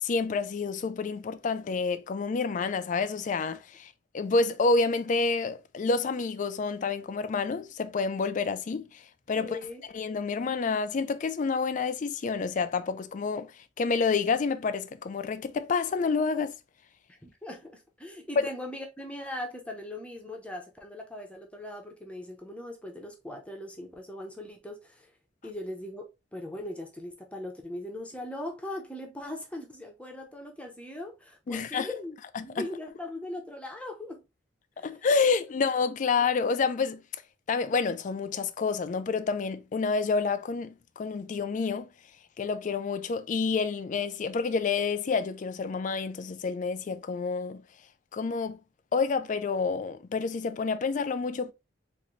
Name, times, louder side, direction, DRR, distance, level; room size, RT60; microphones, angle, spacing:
voice 1, 0.0-9.0 9.3-9.6 9.9-13.5 13.8-16.5 18.4-18.5 31.5-31.9 32.6-32.7 34.8-37.0 37.5-41.9 42.4-47.6 48.1-48.6 48.9-51.5, left 4 dB, 45° left, 0.4 m, -28 dB
voice 2, 9.3-9.8 17.1-25.1 25.4-32.2 32.4-34.2 34.8-35.0, left 1 dB, 5° left, 0.7 m, -40 dB
3.8 x 2.6 x 3.0 m
head